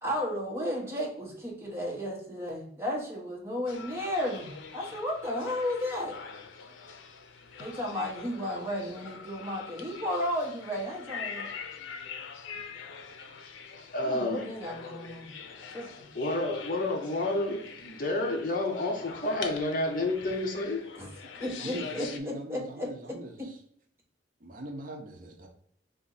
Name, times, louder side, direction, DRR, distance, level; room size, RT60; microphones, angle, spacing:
voice 1, 0.0-6.2 7.6-11.5 14.0-15.3 15.7-16.1 21.0-21.1 21.4-23.2, left 1 dB, 15° right, -3 dB, 1.2 m, -34 dB
sound 1, 3.7-22.2, left 6 dB, 85° left, 0.5 m, -44 dB
voice 2, 13.9-14.5 16.1-20.8, left 2 dB, 50° left, 2 dB, 0.8 m, -30 dB
voice 3, 21.6-23.6 24.4-25.5, right 1 dB, 45° right, 3 dB, 0.7 m, -41 dB
4.2 x 2.5 x 3.9 m, 0.67 s
head